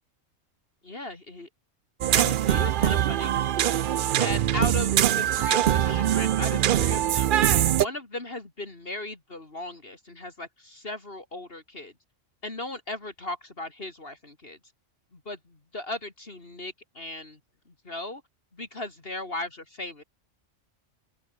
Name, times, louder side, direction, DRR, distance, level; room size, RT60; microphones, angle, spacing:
voice 1, 0.8-1.5 2.1-3.4 4.0-7.3 7.6-11.9 12.4-14.6 15.1-17.4 17.8-18.2 18.5-20.0, left 2 dB, 45° left, 3.1 m, -37 dB
sound 1, 2.0-7.9, right 11 dB, 60° right, 0.5 m, -23 dB
open air
omnidirectional pair, 1.3 m